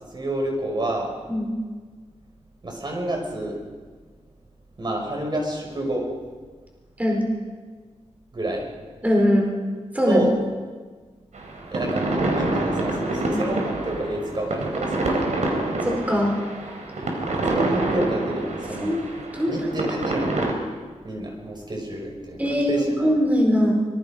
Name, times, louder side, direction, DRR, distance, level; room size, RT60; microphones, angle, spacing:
voice 1, 0.1-1.2 2.6-3.6 4.8-6.1 8.3-8.7 10.1-10.4 11.7-15.1 17.4-18.9 19.5-20.3 21.0-23.1, right 1 dB, 40° right, 1 dB, 5.8 m, -28 dB
voice 2, 9.0-9.5 9.9-10.3 13.3-13.4 15.8-16.3 18.8-19.0 19.3-19.5 22.4-23.7, equal, 15° right, -1 dB, 4.6 m, -21 dB
sound 1, 11.3-20.5, right 2 dB, 90° right, 4.0 m, -27 dB
25.0 x 22.5 x 5.2 m, 1.5 s
wide cardioid pair, 140°, 12 cm